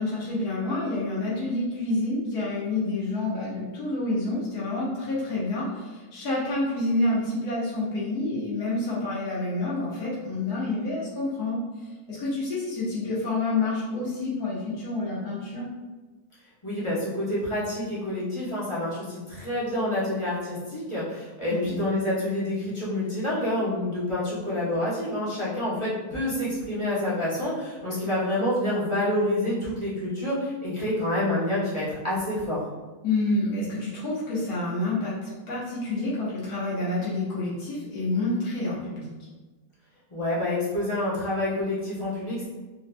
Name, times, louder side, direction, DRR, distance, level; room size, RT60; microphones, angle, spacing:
voice 1, 0.0-11.6 12.1-15.7 21.5-21.8 33.0-39.1, left 2 dB, 80° left, -8 dB, 1.6 m, -28 dB
voice 2, 16.6-32.6 40.1-42.5, left 1 dB, 25° left, -9 dB, 0.8 m, -28 dB
3.7 x 2.6 x 2.2 m, 1.3 s
omnidirectional pair, 1.6 m